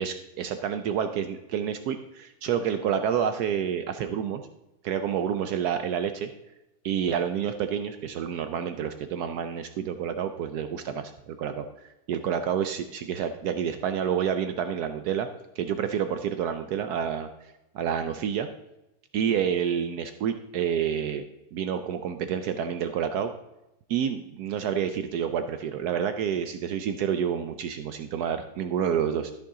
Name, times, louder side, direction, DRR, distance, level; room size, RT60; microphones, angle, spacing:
voice 1, 0.0-4.4 4.8-6.3 6.8-15.3 15.6-17.3 17.7-18.5 19.1-21.2 21.5-23.3 23.9-29.3, right 8 dB, 90° right, 9 dB, 0.8 m, -29 dB
13.0 x 5.7 x 3.7 m, 0.93 s
omnidirectional pair, 2.3 m